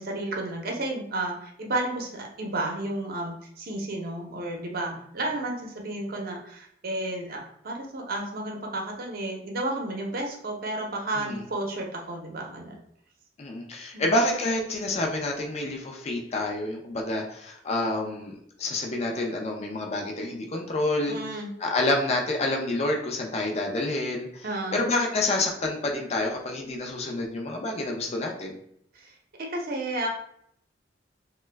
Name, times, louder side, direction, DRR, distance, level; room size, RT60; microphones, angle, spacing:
voice 1, 0.0-12.7 13.9-14.1 21.0-21.5 24.4-24.8 28.9-29.1 29.4-30.1, right 2 dB, 55° right, 1 dB, 0.7 m, -32 dB
voice 2, 13.4-21.2 21.6-24.5 24.7-28.6, left 2 dB, 35° left, 1 dB, 0.4 m, -28 dB
3.0 x 2.2 x 3.3 m, 0.70 s
head